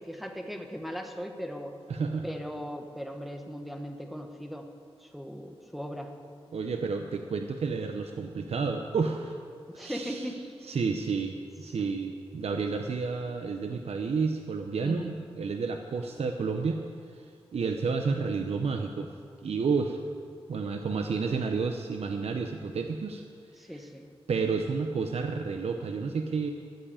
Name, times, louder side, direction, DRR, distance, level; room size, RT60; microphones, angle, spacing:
voice 1, 0.0-1.8 2.2-4.7 5.0-6.1 9.8-10.8 14.8-15.1 23.6-24.1, equal, ahead, 4 dB, 1.1 m, -38 dB
voice 2, 1.9-2.2 6.5-9.4 9.7-10.3 10.7-16.8 17.5-19.1 19.4-20.0 20.5-23.2 24.3-26.5, right 4 dB, 75° right, 5 dB, 0.7 m, -30 dB
13.5 x 7.9 x 8.7 m, 2.3 s
wide cardioid pair, 145°, 11 cm